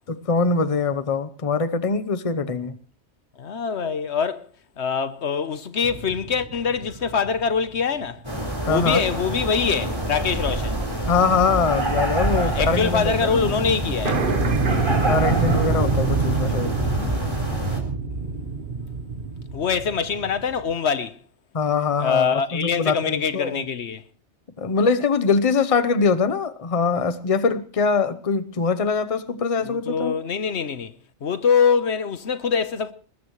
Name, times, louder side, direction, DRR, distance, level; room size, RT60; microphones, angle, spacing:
voice 1, 0.1-2.8 8.7-9.0 11.1-13.5 15.0-16.7 21.5-23.6 24.6-30.2, left 4 dB, 35° left, 0.9 m, -23 dB
voice 2, 3.4-4.5 4.8-8.2 8.7-10.8 12.3-14.2 14.8-15.0 19.5-21.2 22.0-24.0 29.6-30.9 31.2-32.9, left 6 dB, 75° left, 1.3 m, -24 dB
sound 1, 5.8-8.4 8.9-9.0 10.5-10.9 11.1-12.6 12.8-12.9 13.1-13.2 13.5-13.6 14.0-20.8, right 4 dB, 50° right, 1.4 m, -26 dB
sound 2, 8.2-17.8, right 1 dB, 25° right, 4.3 m, -26 dB
21.5 x 20.5 x 3.2 m
omnidirectional pair, 1.2 m